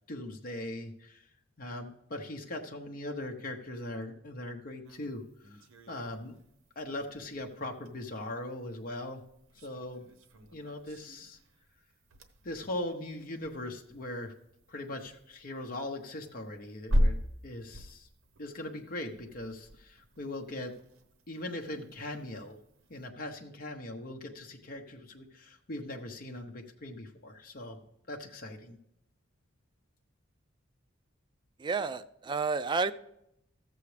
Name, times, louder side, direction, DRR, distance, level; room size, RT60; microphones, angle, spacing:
voice 1, 0.1-1.2 1.6-6.4 6.8-9.2 9.6-10.0 10.5-11.4 12.4-14.3 14.7-17.2 17.4-18.1 18.4-20.7 21.3-22.5 22.9-27.8 28.1-28.8, left 1 dB, 45° left, 0.8 m, -40 dB
sound 1, 4.8-23.1, equal, 75° right, 0.9 m, -39 dB
voice 2, 31.6-32.9, right 4 dB, 20° right, 0.3 m, -30 dB
14.5 x 7.0 x 3.3 m
head